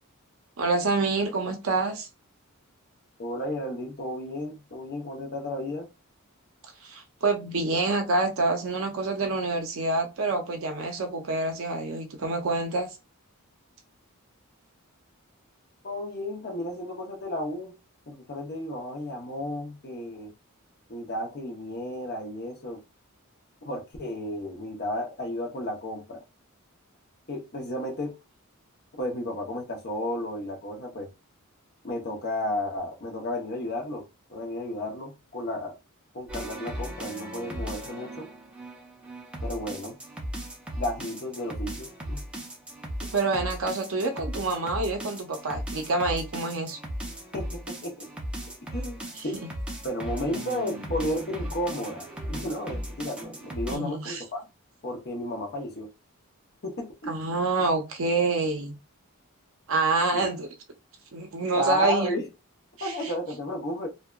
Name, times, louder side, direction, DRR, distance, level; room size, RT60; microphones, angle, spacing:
voice 1, 0.6-2.1 6.8-12.9 43.1-46.8 49.1-49.2 53.7-54.2 57.1-58.7 59.7-60.5 61.1-62.1 62.8-63.1, right 3 dB, 65° right, 0.5 m, -27 dB
voice 2, 3.2-5.9 15.8-17.7 18.1-20.3 20.9-22.8 23.6-26.2 27.3-28.1 29.0-31.1 31.8-35.8 36.1-38.3 39.4-40.0 40.7-42.2 47.3-48.1 48.7-49.4 49.8-54.4 54.8-55.9 56.6-57.2 60.1-60.2 61.5-62.3 62.8-63.9, left 1 dB, 45° left, 0.7 m, -33 dB
sound 1, 36.3-53.8, equal, 5° right, 0.5 m, -37 dB
2.7 x 2.1 x 2.2 m
head